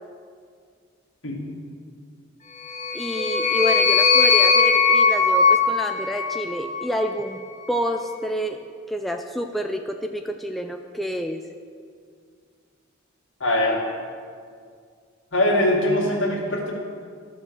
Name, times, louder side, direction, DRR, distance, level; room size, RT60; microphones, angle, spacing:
sound 1, 2.6-7.0, left 5 dB, 35° left, 1.0 m, -19 dB
voice 1, 2.9-7.4 7.7-8.6 8.9-11.4, equal, ahead, 4 dB, 0.3 m, -28 dB
voice 2, 13.4-13.8 15.3-16.7, left 1 dB, 70° left, -2 dB, 2.2 m, -22 dB
12.5 x 6.1 x 6.7 m, 2.1 s
head